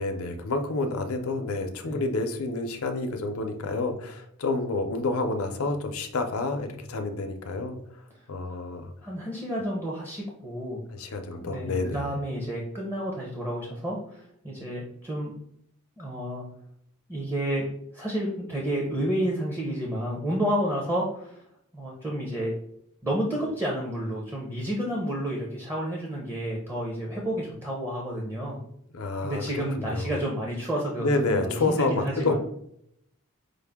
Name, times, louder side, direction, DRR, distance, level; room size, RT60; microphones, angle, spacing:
voice 1, 0.0-7.8 8.3-8.9 10.9-12.1 28.9-29.4 29.8-30.2 31.0-32.3, left 3 dB, 70° left, 5 dB, 0.6 m, -29 dB
voice 2, 9.0-10.8 11.4-15.3 16.0-16.5 17.1-17.7 17.9-21.4 21.7-22.5 23.0-28.6 29.2-32.3, equal, 10° right, -2 dB, 0.6 m, -30 dB
5.2 x 2.1 x 3.5 m, 0.72 s
head